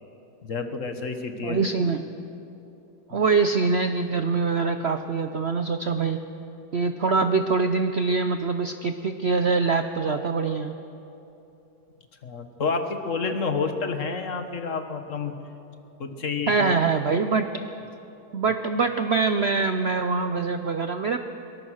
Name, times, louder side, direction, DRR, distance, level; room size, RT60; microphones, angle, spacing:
voice 1, 0.4-1.6 3.1-3.2 12.2-15.3 16.0-16.7, left 4 dB, 45° left, 7 dB, 1.6 m, -29 dB
voice 2, 1.4-2.0 3.1-6.2 6.7-10.7 16.5-17.5 18.3-21.2, right 4 dB, 80° right, 8 dB, 0.5 m, -24 dB
23.0 x 19.5 x 6.4 m, 2.9 s
omnidirectional pair, 2.1 m